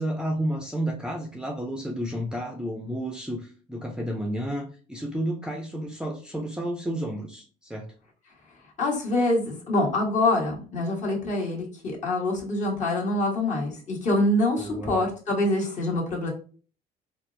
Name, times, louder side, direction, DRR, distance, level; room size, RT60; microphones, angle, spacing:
voice 1, 0.0-7.9 14.5-15.0, right 1 dB, 5° right, 1 dB, 0.5 m, -31 dB
voice 2, 8.8-16.3, left 2 dB, 45° left, -2 dB, 1.4 m, -25 dB
4.2 x 2.0 x 2.6 m, 0.40 s
cardioid pair, 110°, 17 cm